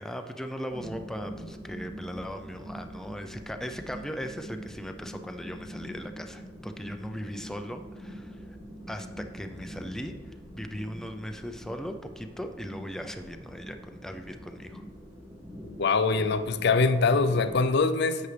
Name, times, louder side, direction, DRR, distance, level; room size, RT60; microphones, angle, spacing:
voice 1, 0.0-8.4 8.9-10.1 10.5-14.8, equal, 5° left, 0.5 m, -38 dB
sound 1, 0.7-17.7, equal, 20° right, 2.4 m, -44 dB
voice 2, 15.7-18.3, left 4 dB, 65° left, 0.5 m, -23 dB
10.5 x 7.9 x 3.3 m
head